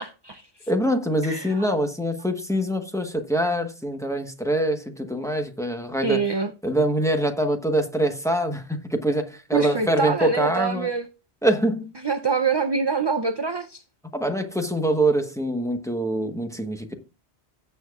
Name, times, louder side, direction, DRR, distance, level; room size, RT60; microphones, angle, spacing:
voice 1, 0.0-0.7 1.2-1.7 6.0-6.5 9.5-11.1 12.0-13.8, right 5 dB, 35° right, 0.5 m, -25 dB
voice 2, 0.7-6.2 6.6-10.9 11.4-11.9 14.1-16.9, right 1 dB, 5° left, 1.0 m, -24 dB
16.0 x 6.8 x 2.4 m
omnidirectional pair, 1.1 m